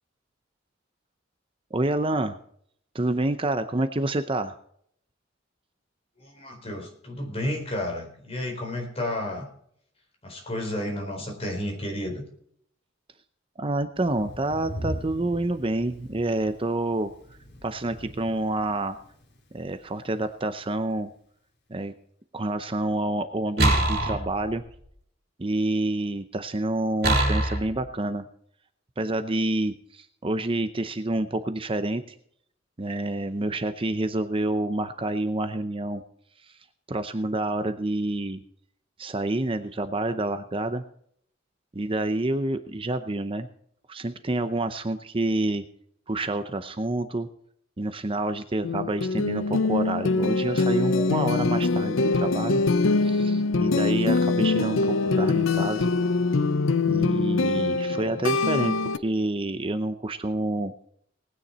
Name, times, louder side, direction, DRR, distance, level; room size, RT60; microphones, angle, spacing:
voice 1, 1.7-2.3 2.9-4.6 13.6-17.1 17.6-19.0 19.5-21.1 21.7-21.9 22.3-24.6 25.4-28.3 29.0-32.2 32.8-36.0 36.4-36.6 36.9-38.4 39.0-40.8 41.7-43.5 43.9-45.6 46.1-47.3 47.8-52.6 53.0-55.9 56.8-60.7, right 2 dB, 25° right, 10 dB, 0.7 m, -28 dB
voice 2, 6.2-9.5 10.2-12.2, left 1 dB, 30° left, 1 dB, 4.3 m, -32 dB
Thunder, 13.9-20.8, equal, 60° left, 3.4 m, -41 dB
sound 1, 23.6-24.8 27.0-27.8, right 1 dB, 55° right, 5.1 m, -23 dB
sound 2, 48.6-59.0, left 3 dB, 75° left, 0.6 m, -23 dB
19.0 x 9.6 x 4.2 m, 0.66 s
head